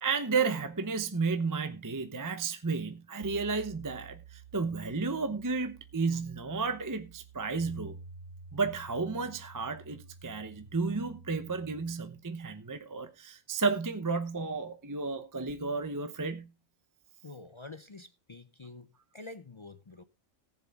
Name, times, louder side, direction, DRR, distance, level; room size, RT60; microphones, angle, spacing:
voice 1, 0.0-8.0 8.5-16.5, right 4 dB, 20° right, 0.7 m, -32 dB
sound 1, 3.2-11.9, right 4 dB, 85° right, 1.3 m, -50 dB
voice 2, 17.2-18.9 19.1-20.0, left 3 dB, 40° left, 0.4 m, -47 dB
18.0 x 7.4 x 3.6 m
omnidirectional pair, 1.3 m